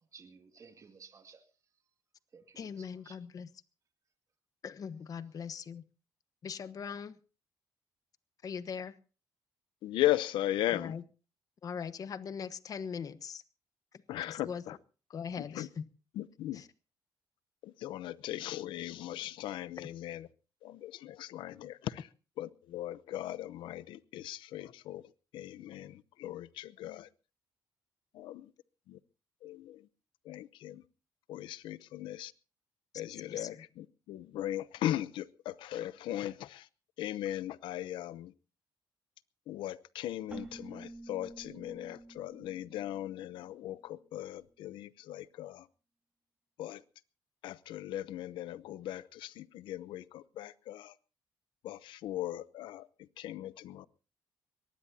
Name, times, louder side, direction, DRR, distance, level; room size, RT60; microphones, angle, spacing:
voice 1, 0.1-1.4 2.3-3.2, right 5 dB, 40° right, 2.3 m, -56 dB
voice 2, 2.5-3.5 4.6-5.8 6.4-7.2 8.4-9.0 10.7-11.0 11.6-13.4 14.2-14.6 15.1-15.9 16.5-16.7 33.3-33.5, left 6 dB, 50° left, 1.2 m, -40 dB
voice 3, 9.8-11.0 14.1-14.8 15.4-15.7 16.2-16.6 17.6-20.3 20.6-22.1 22.4-25.0 25.3-27.1 28.1-28.5 28.9-29.0 29.4-29.9 30.2-30.8 31.3-32.3 32.9-36.7 37.0-38.3 39.5-45.7 46.6-46.8 47.4-50.9 51.6-53.9, left 13 dB, 90° left, 0.7 m, -38 dB
Keyboard (musical), 40.3-43.9, right 2 dB, 10° right, 3.2 m, -50 dB
22.5 x 19.0 x 2.8 m
cardioid pair, 115°, 8 cm